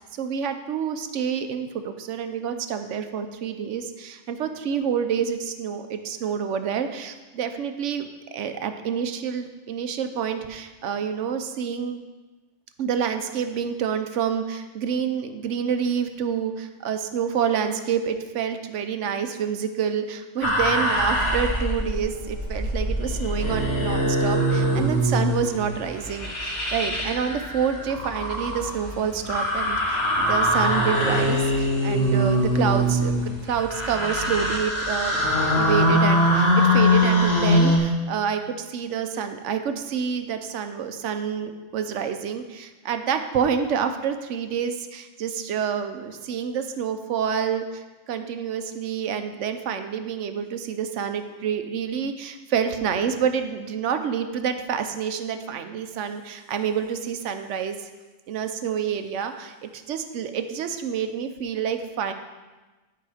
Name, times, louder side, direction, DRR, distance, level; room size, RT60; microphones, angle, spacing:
voice 1, 0.0-12.0 12.8-35.3 35.5-57.9 58.3-62.1, right 7 dB, 80° right, 8 dB, 1.0 m, -28 dB
sound 1, 20.4-37.8, equal, 60° left, 1.6 m, -23 dB
11.0 x 4.9 x 4.9 m, 1.2 s
omnidirectional pair, 1.2 m